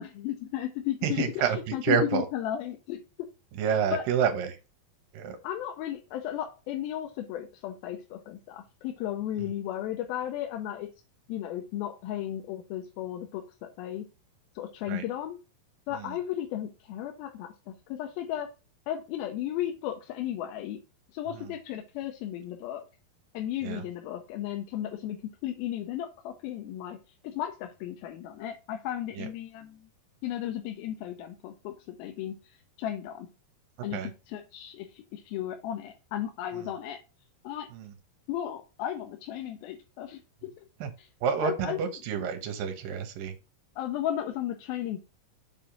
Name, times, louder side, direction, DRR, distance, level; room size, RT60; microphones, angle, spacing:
voice 1, 0.0-3.0 3.9-4.2 5.4-10.9 11.3-14.1 14.6-15.4 15.9-18.5 18.9-20.8 21.1-22.8 23.3-27.0 27.2-29.9 30.2-33.3 33.8-37.0 37.4-37.7 38.3-40.5 41.0-41.1 41.4-41.8 43.8-45.0, left 11 dB, 90° left, 4 dB, 2.5 m, -35 dB
voice 2, 1.0-1.6 1.8-2.2 3.6-4.6 5.1-5.4 14.9-15.0 15.9-16.1 21.4-21.5 23.6-23.8 29.2-29.3 33.9-34.1 37.7-37.9 40.8-40.9 41.2-43.3, right 7 dB, 75° right, 7 dB, 2.7 m, -28 dB
7.3 x 3.6 x 5.8 m, 0.30 s
omnidirectional pair, 4.2 m